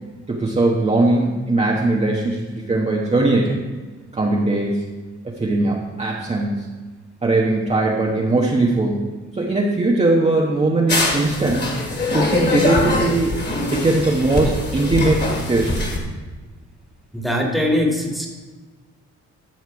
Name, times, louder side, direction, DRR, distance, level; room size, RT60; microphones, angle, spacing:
voice 1, 0.3-3.6 4.1-4.8 5.4-6.5 7.2-9.0 9.3-11.6 12.1-13.3 13.6-15.8, right 2 dB, 20° right, -3 dB, 1.1 m, -19 dB
sound 1, 10.9-16.0, left 2 dB, 35° left, 2.1 m, -23 dB
voice 2, 17.1-18.3, left 1 dB, ahead, 0 dB, 1.9 m, -21 dB
13.0 x 4.6 x 4.7 m, 1.3 s
cardioid pair, 90°, 30 cm